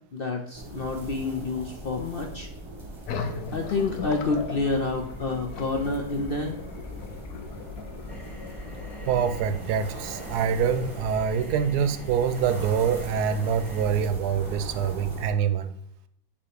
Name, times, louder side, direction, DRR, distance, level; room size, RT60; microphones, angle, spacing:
voice 1, 0.1-2.5 3.5-6.6, left 3 dB, 60° left, 2 dB, 0.6 m, -28 dB
sound 1, 0.5-15.3, right 1 dB, 20° right, 1.1 m, -40 dB
sound 2, 3.1-10.3, left 5 dB, 80° left, 1.2 m, -39 dB
sound 3, 8.1-13.8, equal, ahead, 1.1 m, -45 dB
voice 2, 9.1-15.8, right 7 dB, 80° right, 11 dB, 1.1 m, -25 dB
7.0 x 3.0 x 4.9 m, 0.70 s
omnidirectional pair, 1.7 m